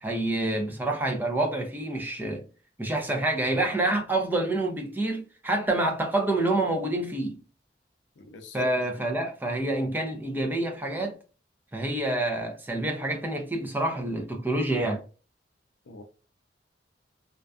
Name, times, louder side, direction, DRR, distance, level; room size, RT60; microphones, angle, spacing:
voice 1, 0.0-2.4 2.8-7.4 8.5-11.2 11.7-15.0, right 2 dB, 10° right, 0.4 m, -27 dB
voice 2, 8.2-8.7 15.9-16.0, left 1 dB, 80° left, 0.5 m, -39 dB
2.4 x 2.2 x 2.3 m
head